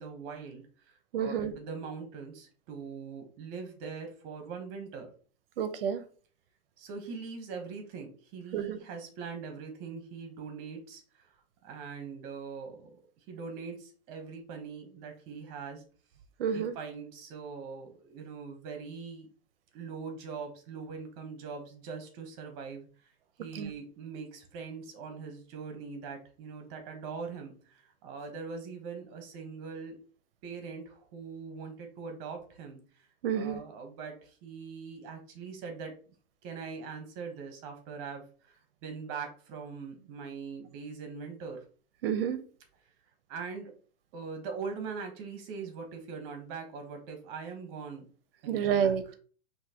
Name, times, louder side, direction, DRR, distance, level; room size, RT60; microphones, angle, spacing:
voice 1, 0.0-5.1 6.8-11.3 11.6-12.9 13.3-15.8 16.5-19.3 19.7-22.9 23.4-30.0 30.4-32.8 33.3-35.9 36.4-38.5 38.8-41.6 43.3-43.7 44.1-48.0 48.4-48.9, right 5 dB, 30° right, 5 dB, 1.1 m, -42 dB
voice 2, 1.1-1.5 5.6-6.0 8.5-8.8 16.4-16.7 23.5-23.7 33.2-33.6 42.0-42.4 48.5-49.2, right 8 dB, 55° right, 11 dB, 0.8 m, -29 dB
5.7 x 2.8 x 2.9 m, 0.41 s
hypercardioid pair, 155°, 33 cm